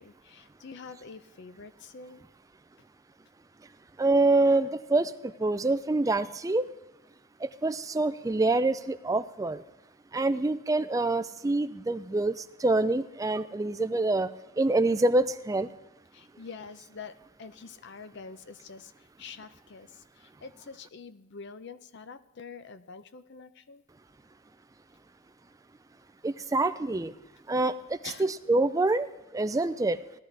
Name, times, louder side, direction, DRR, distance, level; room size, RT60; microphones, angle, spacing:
voice 1, 0.0-2.2 16.1-17.1 17.4-18.9 19.2-23.8 28.0-28.3, left 5 dB, 50° left, 12 dB, 0.6 m, -46 dB
voice 2, 4.0-5.1 5.4-6.6 7.4-9.6 10.1-12.4 12.6-14.3 14.6-15.7 26.2-27.1 27.5-27.7 28.2-29.1 29.3-30.0, right 2 dB, 15° right, 12 dB, 0.3 m, -26 dB
17.5 x 11.5 x 3.3 m, 0.98 s
head